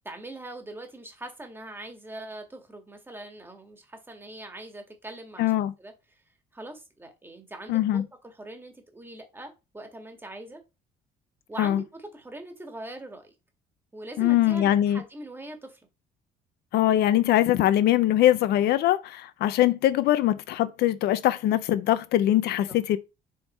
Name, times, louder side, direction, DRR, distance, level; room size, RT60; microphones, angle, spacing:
voice 1, 0.1-5.5 5.8-6.2 6.5-10.6 11.5-13.3 13.9-15.8, right 2 dB, 10° right, 1.6 m, -42 dB
voice 2, 5.4-5.7 7.7-8.0 11.6-11.8 14.2-15.0 16.7-23.0, left 13 dB, 75° left, 0.6 m, -22 dB
6.8 x 3.6 x 4.1 m
cardioid pair, 110°, 17 cm